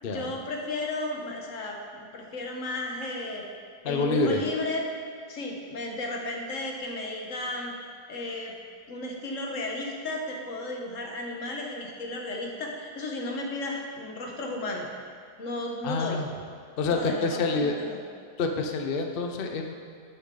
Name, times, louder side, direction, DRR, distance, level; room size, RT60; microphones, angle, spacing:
voice 1, 0.0-3.4 3.8-4.9 5.3-7.7 8.1-8.5 8.9-14.9 15.4-16.2 16.9-18.0, left 2 dB, 50° left, 0 dB, 1.4 m, -34 dB
voice 2, 3.8-4.4 15.8-16.3 16.8-17.7 18.4-19.7, left 3 dB, 80° left, 3 dB, 0.5 m, -27 dB
11.5 x 6.9 x 3.8 m, 2.3 s
omnidirectional pair, 2.0 m